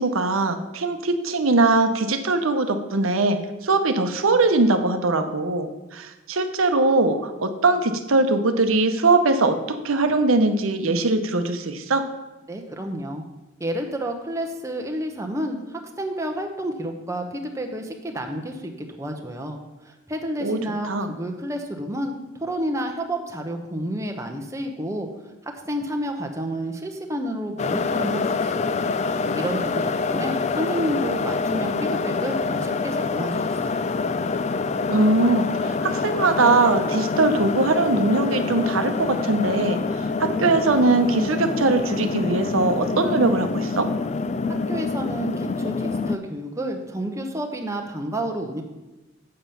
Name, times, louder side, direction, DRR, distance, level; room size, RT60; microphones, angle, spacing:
voice 1, 0.0-12.1 20.4-20.6 20.8-21.1 34.9-39.8 40.2-43.9, right 3 dB, 90° right, 7 dB, 0.8 m, -21 dB
voice 2, 12.5-13.2 13.6-18.7 19.0-19.6 19.8-25.1 25.4-28.8 29.3-33.9 44.7-48.6, right 1 dB, 15° right, 3 dB, 0.8 m, -30 dB
sound 1, 27.6-46.2, left 4 dB, 35° left, 0.3 m, -26 dB
7.6 x 7.1 x 5.6 m, 1.1 s
head